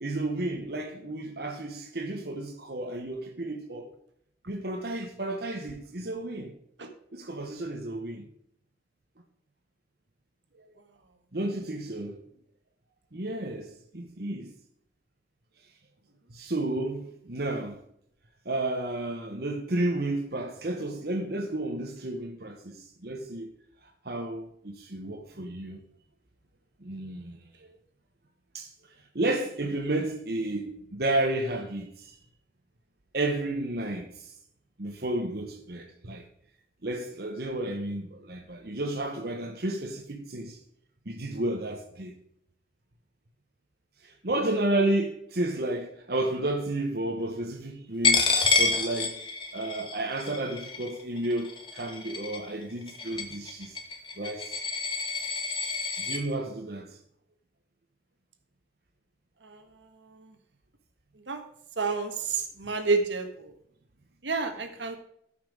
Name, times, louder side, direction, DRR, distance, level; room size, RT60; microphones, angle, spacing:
voice 1, 0.0-3.9 4.5-6.5 7.1-8.3 11.3-12.2 13.1-14.5 16.3-17.8 18.4-23.5 24.0-25.8 26.8-27.4 28.5-28.7 29.1-32.2 33.1-34.3 34.8-36.3 36.8-40.6 41.0-42.2 44.0-49.2 49.5-53.8 54.2-54.6 56.1-57.0, right 1 dB, 55° right, 1.2 m, -32 dB
Coin (dropping), 48.0-56.2, left 4 dB, 25° left, 1.4 m, -28 dB
voice 2, 61.8-62.1 62.6-63.3 64.2-65.0, right 3 dB, 80° right, 1.6 m, -28 dB
13.5 x 5.9 x 4.9 m
head